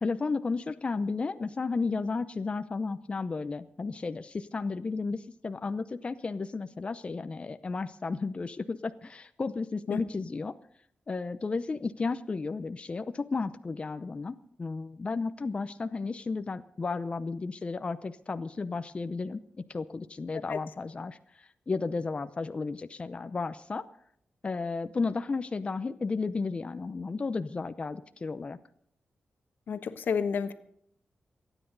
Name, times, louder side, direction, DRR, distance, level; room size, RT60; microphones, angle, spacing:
voice 1, 0.0-10.5 11.1-14.3 14.6-19.4 19.7-23.8 24.4-28.6, left 4 dB, 35° left, 10 dB, 0.7 m, -33 dB
voice 2, 29.7-30.5, left 6 dB, 85° left, 9 dB, 1.2 m, -29 dB
28.0 x 10.0 x 4.0 m, 0.69 s
wide cardioid pair, 100°, 3 cm